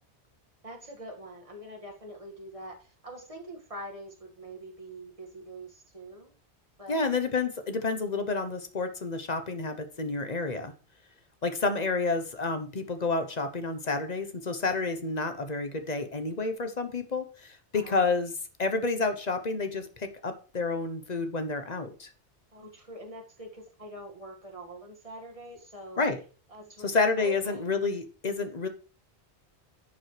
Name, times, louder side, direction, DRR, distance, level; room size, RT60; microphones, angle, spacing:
voice 1, 0.6-6.3 6.8-7.2 17.7-18.0 22.5-26.0 26.5-27.7, right 1 dB, 30° right, 1 dB, 1.9 m, -44 dB
voice 2, 6.9-10.7 11.4-18.3 18.6-22.1 26.0-26.2 26.8-28.7, left 3 dB, 40° left, 8 dB, 1.0 m, -29 dB
11.0 x 7.1 x 3.3 m, 0.37 s
omnidirectional pair, 1.2 m